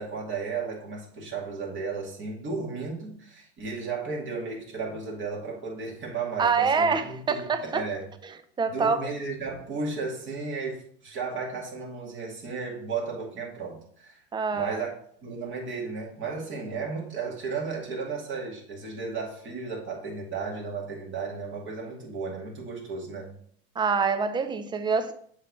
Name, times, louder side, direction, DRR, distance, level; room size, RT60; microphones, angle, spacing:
voice 1, 0.0-8.1 8.7-14.2 14.5-14.9 15.2-23.3, right 4 dB, 35° right, 2.2 m, -34 dB
voice 2, 6.4-7.8 8.6-9.0 14.3-14.8 23.8-25.1, right 5 dB, 15° right, 0.5 m, -25 dB
7.3 x 3.2 x 4.2 m
supercardioid pair, 110°, 33 cm